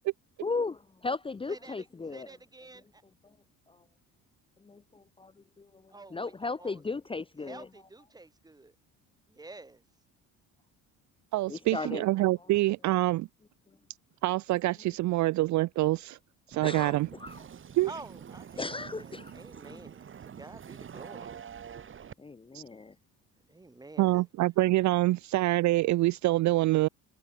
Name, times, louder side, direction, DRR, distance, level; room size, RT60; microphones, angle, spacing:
voice 1, 0.4-2.3 4.7-4.8 5.2-5.3 6.1-7.7 11.5-12.0 16.6-17.4 18.6-19.3 19.6-19.8 22.2-22.9, left 3 dB, 15° left, 1.0 m, -35 dB
voice 2, 1.5-3.0 5.9-6.8 7.4-8.7 9.3-9.8 11.8-11.9 17.9-21.5 23.5-24.3, right 2 dB, 10° right, 2.6 m, -49 dB
voice 3, 11.3-13.3 14.2-16.2 16.5-17.1 17.8-17.9 22.5-22.6 24.0-26.9, right 18 dB, 55° right, 0.5 m, -26 dB
sound 1, 16.5-22.1, right 8 dB, 35° right, 2.9 m, -46 dB
cardioid pair, 140°, 34 cm